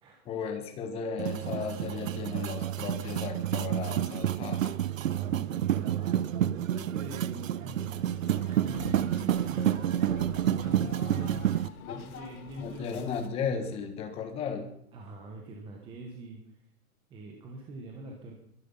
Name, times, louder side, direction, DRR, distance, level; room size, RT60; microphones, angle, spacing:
voice 1, 0.2-4.8 11.8-12.1 12.6-14.7, left 6 dB, 15° left, 6 dB, 1.4 m, -35 dB
sound 1, 1.2-11.7, right 11 dB, 60° right, 0.8 m, -29 dB
voice 2, 5.1-8.3 8.6-9.7 10.6-11.5 11.8-13.0 14.9-16.5 17.1-18.3, right 3 dB, 10° right, 1 dB, 1.3 m, -43 dB
sound 2, 7.8-13.3, left 7 dB, 70° left, 2.1 m, -47 dB
23.0 x 11.0 x 5.6 m, 0.75 s
hypercardioid pair, 170°, 44 cm